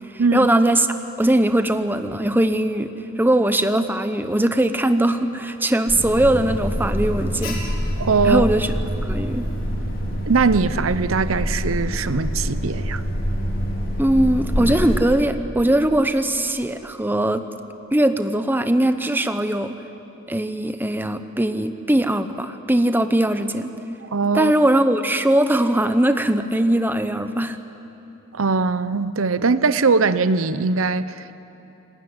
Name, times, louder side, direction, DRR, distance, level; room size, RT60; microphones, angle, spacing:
voice 1, 0.3-0.9 1.2-2.9 3.2-7.6 8.2-8.7 9.0-9.4 14.0-17.4 17.9-19.8 20.3-23.7 24.3-27.6, right 1 dB, 10° right, 0.9 m, -20 dB
Alarm, 5.9-15.0, equal, 65° left, 4.7 m, -26 dB
voice 2, 8.0-8.5 10.3-13.0 24.1-24.5 28.3-31.3, right 4 dB, 75° right, 0.8 m, -20 dB
28.0 x 19.0 x 9.6 m
head